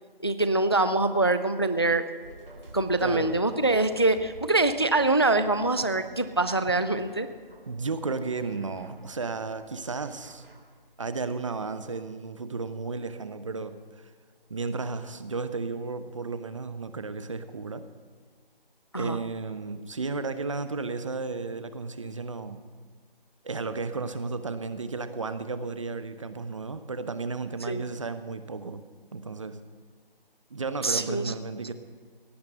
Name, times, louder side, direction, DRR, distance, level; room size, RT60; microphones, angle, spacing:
voice 1, 0.2-2.1 2.7-7.3 18.9-19.2 27.7-27.8 30.8-31.3, right 2 dB, 25° left, 11 dB, 0.4 m, -24 dB
sound 1, 2.2-10.8, right 2 dB, 70° right, 3.0 m, -50 dB
voice 2, 3.0-3.3 7.7-10.4 11.0-14.1 14.5-17.8 19.0-22.6 23.4-28.8 29.1-29.6 30.5-31.7, right 4 dB, 35° right, 11 dB, 0.9 m, -33 dB
17.0 x 10.5 x 7.8 m, 1.5 s
figure-of-eight pair, 165°, 29 cm